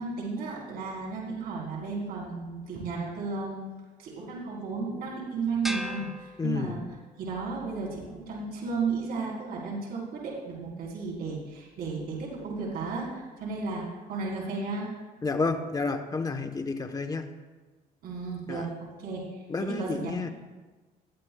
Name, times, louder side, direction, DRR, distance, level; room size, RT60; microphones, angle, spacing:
voice 1, 0.0-3.6 4.0-6.8 7.2-14.9 18.0-18.7 19.0-20.3, right 4 dB, 65° right, -5 dB, 4.3 m, -34 dB
sound 1, 5.6-7.1, equal, ahead, 0.8 m, -38 dB
voice 2, 6.4-6.8 15.2-17.3 18.5-18.7 19.5-20.3, left 4 dB, 20° left, 6 dB, 1.0 m, -30 dB
20.5 x 11.5 x 2.3 m, 1.3 s
cardioid pair, 110°, 17 cm